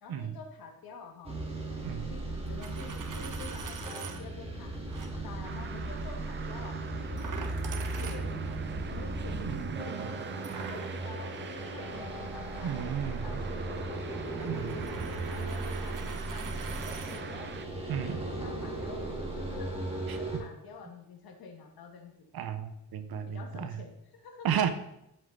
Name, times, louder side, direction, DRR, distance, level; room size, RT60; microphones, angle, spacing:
voice 1, 0.0-1.4 1.9-4.7 5.2-8.6 8.9-10.0 10.4-14.0 14.4-17.5 18.0-19.8 20.1-22.1 23.3-24.6, left 5 dB, 75° left, 3 dB, 1.9 m, -48 dB
sound 1, 1.2-20.4, right 2 dB, 15° right, 2.1 m, -37 dB
Coin (dropping), 2.5-4.2 4.9-5.1 7.2-8.6 10.4-17.2, right 6 dB, 60° right, 1.3 m, -45 dB
sound 2, 5.4-17.7, right 7 dB, 30° right, 0.4 m, -45 dB
voice 2, 9.4-10.0 12.6-13.4 14.4-15.0 17.9-18.2 20.1-20.2 22.3-23.8 24.4-24.7, right 8 dB, 80° right, 10 dB, 1.0 m, -34 dB
11.5 x 7.8 x 4.0 m, 0.82 s
wide cardioid pair, 145°, 36 cm